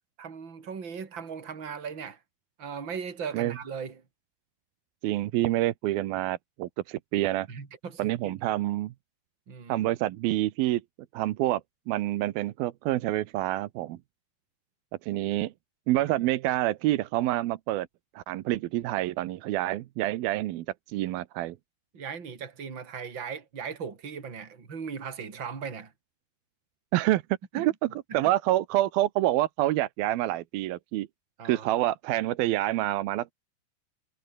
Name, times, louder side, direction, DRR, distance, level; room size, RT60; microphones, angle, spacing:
voice 1, 0.2-2.2 2.6-4.0 7.5-8.4 9.5-9.9 16.0-16.3 21.9-25.9 27.5-28.2 31.4-31.8, right 6 dB, 30° right, 3.8 m, -38 dB
voice 2, 5.0-7.5 8.0-8.9 9.7-10.8 11.1-11.6 11.9-14.0 15.0-15.5 15.9-17.9 18.2-21.6 26.9-27.2 27.5-27.7 28.1-31.1 31.4-33.3, right 15 dB, 75° right, 2.6 m, -27 dB
omnidirectional pair, 4.7 m